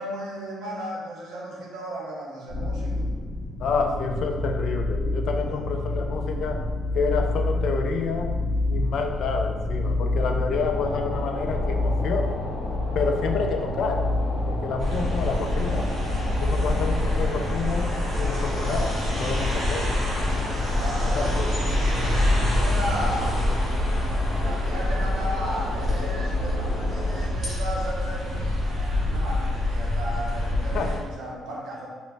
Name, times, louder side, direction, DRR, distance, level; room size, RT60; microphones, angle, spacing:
voice 1, 0.0-3.0 5.4-5.7 9.8-10.0 20.2-23.4 24.3-31.9, equal, 85° right, -4 dB, 0.8 m, -35 dB
sound 1, 2.5-17.5, left 2 dB, 20° left, 1.0 m, -28 dB
voice 2, 3.6-6.6 6.9-8.3 8.7-12.4 12.9-14.1 14.5-15.9 16.4-17.9 18.2-18.9 19.2-20.0 21.0-21.5 30.7-30.9, left 5 dB, 70° left, 4 dB, 0.3 m, -28 dB
sound 2, 10.7-27.3, left 1 dB, 85° left, 0.7 m, -37 dB
sound 3, 14.8-31.0, left 1 dB, 55° right, 1.0 m, -26 dB
3.0 x 2.5 x 3.3 m, 1.5 s
cardioid pair, 100°, 0 cm